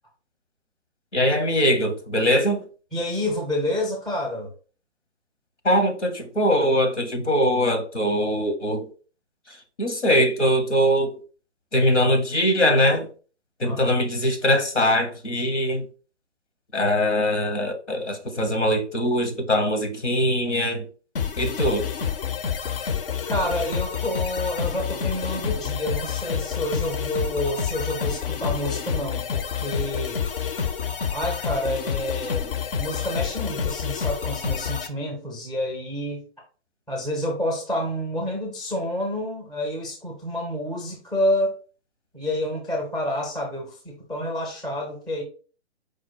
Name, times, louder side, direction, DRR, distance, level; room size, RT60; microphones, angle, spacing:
voice 1, 1.1-2.6 5.6-8.9 9.8-11.2 11.7-13.1 13.6-15.8 16.7-20.8 21.4-21.9, equal, 90° left, 1.1 m, -22 dB
voice 2, 2.9-4.5 13.6-14.0 23.3-30.2 31.1-36.2 36.9-41.5 42.1-45.2, left 1 dB, ahead, 0.5 m, -28 dB
sound 1, 21.2-34.9, left 7 dB, 55° left, 0.5 m, -28 dB
4.8 x 2.1 x 4.4 m
figure-of-eight pair, 130°, 34 cm